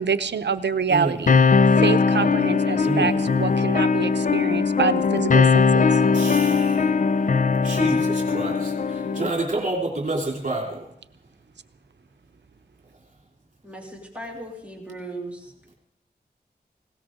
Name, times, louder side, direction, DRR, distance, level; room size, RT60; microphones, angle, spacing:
voice 1, 0.0-1.3 1.8-6.0, right 5 dB, 90° right, 11 dB, 0.8 m, -26 dB
sound 1, 1.3-9.3, left 5 dB, 50° left, 0.5 m, -20 dB
voice 2, 2.8-3.1 6.1-10.8, right 2 dB, 45° right, -2 dB, 3.1 m, -29 dB
voice 3, 13.6-15.8, right 1 dB, 5° right, -1 dB, 3.0 m, -38 dB
19.5 x 17.5 x 3.8 m, 0.75 s
wide cardioid pair, 85°, 17 cm